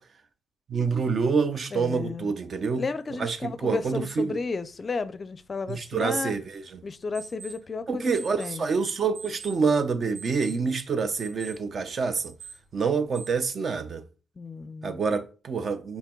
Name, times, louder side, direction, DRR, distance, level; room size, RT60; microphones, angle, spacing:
voice 1, 0.7-2.8 3.2-4.4 5.7-6.6 7.9-12.3 12.7-14.0 14.8-16.0, right 5 dB, 45° right, 0.8 m, -27 dB
voice 2, 1.7-2.3 2.8-6.3 6.8-8.1 8.4-8.7 14.4-15.0, left 4 dB, 35° left, 0.5 m, -33 dB
sound 1, 3.1-13.5, right 6 dB, 80° right, 3.5 m, -49 dB
5.7 x 4.2 x 4.5 m
cardioid pair, 90°, 0 cm